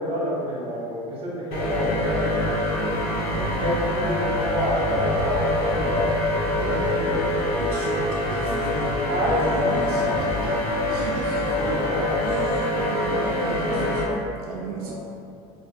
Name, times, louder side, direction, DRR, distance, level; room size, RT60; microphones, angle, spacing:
voice 1, 0.0-2.9 3.4-6.5 9.0-10.6 11.5-12.2 12.8-12.9 13.2-14.0 14.8-15.0, equal, 30° right, -6 dB, 1.3 m, -29 dB
sound 1, 1.5-14.0, left 1 dB, 55° left, 0.8 m, -25 dB
voice 2, 3.0-3.8 6.0-6.2 6.5-10.6 10.9-11.6 12.2-14.1 14.5-15.0, right 3 dB, 75° right, -3 dB, 0.4 m, -34 dB
sound 2, 4.7-7.5 7.8-8.3 9.0-12.5 12.8-13.1, left 1 dB, 15° left, 1.1 m, -38 dB
3.1 x 2.6 x 3.3 m, 2.5 s
hypercardioid pair, 85°, 19 cm